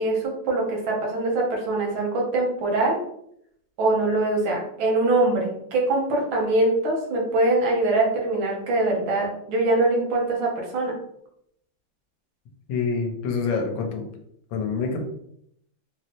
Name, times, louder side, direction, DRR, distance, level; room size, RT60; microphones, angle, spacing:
voice 1, 0.0-3.0 3.8-10.9, right 2 dB, 90° right, -1 dB, 1.7 m, -23 dB
voice 2, 12.7-14.1 14.5-15.0, left 5 dB, 85° left, 3 dB, 1.4 m, -26 dB
3.9 x 2.0 x 2.8 m, 0.72 s
omnidirectional pair, 2.1 m